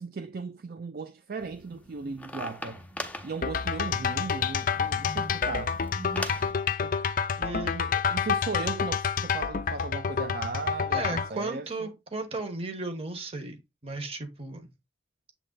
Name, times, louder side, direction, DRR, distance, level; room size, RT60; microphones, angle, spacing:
voice 1, 0.0-2.8 3.2-5.8 6.8-6.9 7.7-11.9, right 4 dB, 50° right, 0.4 m, -37 dB
sound 1, 1.4-6.5, left 1 dB, 5° left, 0.7 m, -41 dB
sound 2, 3.4-11.3, left 6 dB, 45° left, 0.4 m, -28 dB
voice 2, 7.4-7.8 10.9-14.7, right 2 dB, 30° right, 1.2 m, -35 dB
7.5 x 3.3 x 3.9 m
head